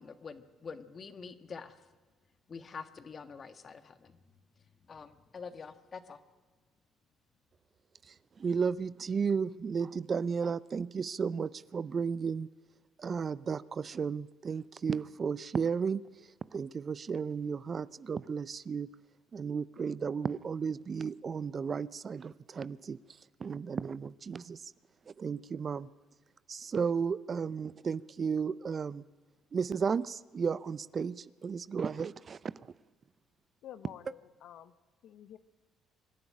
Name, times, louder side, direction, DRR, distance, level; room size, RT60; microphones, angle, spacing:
voice 1, 0.0-1.9 2.5-4.2 4.6-6.2, left 5 dB, 45° left, 1.6 m, -46 dB
voice 2, 8.0-12.5 13.0-18.9 19.3-24.7 25.0-25.9 26.5-29.0 29.5-32.7, right 6 dB, 45° right, 0.5 m, -34 dB
voice 3, 33.6-34.7 35.0-35.4, left 11 dB, 70° left, 0.7 m, -49 dB
25.0 x 11.0 x 9.8 m
hypercardioid pair, 55°, 0 cm